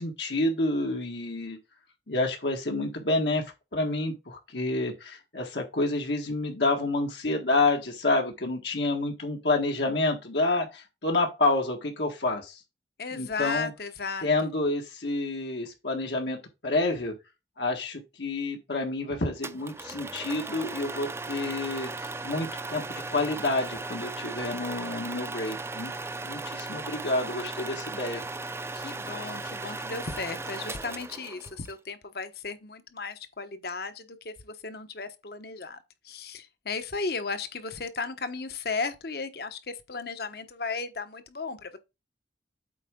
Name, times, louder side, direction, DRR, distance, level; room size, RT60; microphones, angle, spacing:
voice 1, 0.0-1.6 2.1-12.6 13.1-13.7 14.2-17.1 17.6-25.9 26.2-28.2, left 2 dB, 75° left, 1.7 m, -29 dB
voice 2, 13.0-14.5 28.7-35.8 36.0-41.8, left 4 dB, 60° left, 1.1 m, -35 dB
sound 1, 19.4-31.7, right 3 dB, 15° right, 0.5 m, -37 dB
8.2 x 4.6 x 3.8 m
head